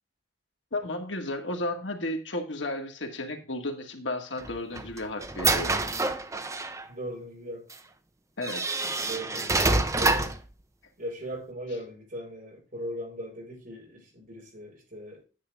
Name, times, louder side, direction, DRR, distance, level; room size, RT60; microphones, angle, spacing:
voice 1, 0.7-5.7 8.4-8.9, left 1 dB, 80° left, 2.0 m, -33 dB
sound 1, 4.4-6.8 7.7-7.8 8.4-10.5, right 2 dB, 15° right, 0.8 m, -27 dB
voice 2, 6.9-7.7 9.0-10.4 11.0-15.2, equal, 50° right, 5.4 m, -38 dB
10.0 x 6.8 x 3.6 m
head